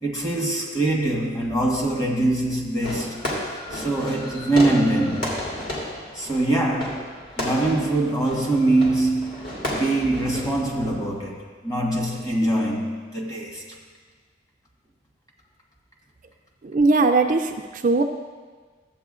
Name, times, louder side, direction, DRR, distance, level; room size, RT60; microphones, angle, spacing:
voice 1, 0.0-3.2 3.7-5.4 6.1-13.8, right 2 dB, 20° left, -2 dB, 1.3 m, -23 dB
Fireworks, 2.8-10.9, left 1 dB, 50° left, 2.4 m, -32 dB
voice 2, 16.6-18.0, right 3 dB, 45° right, 4 dB, 0.4 m, -20 dB
14.0 x 8.2 x 2.5 m, 1.5 s
head